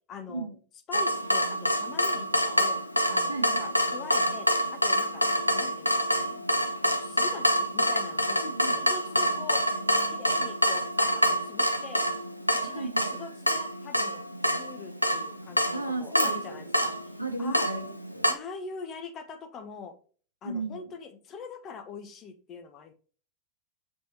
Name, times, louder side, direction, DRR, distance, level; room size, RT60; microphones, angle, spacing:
voice 1, 0.1-0.5 0.9-2.8 3.1-6.4 6.8-8.5 8.8-9.7 10.1-12.1 12.5-16.9 17.4-17.7 18.3-20.0 20.4-22.9, left 5 dB, 30° left, 7 dB, 0.7 m, -43 dB
Water tap faucet / Drip, 0.9-18.3, equal, 90° left, 0.4 m, -27 dB
voice 2, 3.3-3.7 8.4-8.8 12.6-13.2 15.7-16.9 17.2-18.2 20.4-20.9, right 2 dB, 85° right, 5 dB, 0.7 m, -35 dB
6.2 x 3.1 x 2.7 m, 0.40 s
figure-of-eight pair, 90°, 0 cm